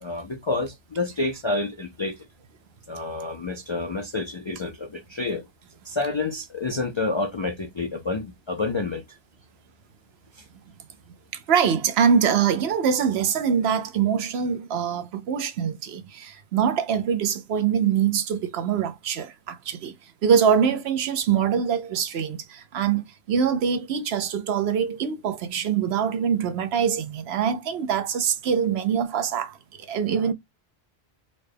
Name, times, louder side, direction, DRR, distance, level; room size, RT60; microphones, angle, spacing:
voice 1, 0.0-2.3 2.9-5.5 5.8-9.2 10.3-10.5, left 3 dB, 50° left, 0.3 m, -29 dB
voice 2, 11.3-19.9 20.2-30.3, right 7 dB, 75° right, 0.9 m, -24 dB
3.9 x 2.2 x 3.3 m
omnidirectional pair, 1.1 m